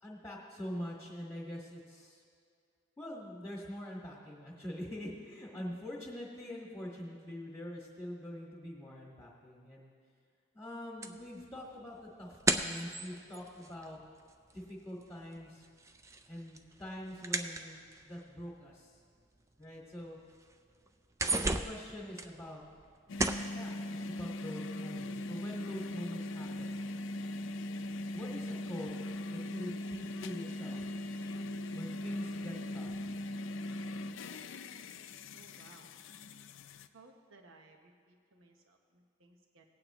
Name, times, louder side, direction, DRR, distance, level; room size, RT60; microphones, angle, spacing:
voice 1, 0.0-2.2 3.0-9.9 10.5-14.0 14.5-15.6 16.3-19.0 19.6-20.2 21.2-22.6 23.5-26.8 28.1-28.9 29.3-30.9 31.7-33.1, left 1 dB, 10° left, -6 dB, 1.6 m, -44 dB
sound 1, 11.0-14.7 15.0-18.2 18.9-19.0 19.5-19.6 20.0-20.5 20.9-22.9 23.2-23.6, right 3 dB, 15° right, 0.3 m, -35 dB
sound 2, 23.1-36.9, left 1 dB, 65° left, 0.4 m, -40 dB
voice 2, 35.3-36.0 36.9-39.6, right 3 dB, 75° right, 3 dB, 1.0 m, -60 dB
18.0 x 8.7 x 3.0 m, 2.2 s
head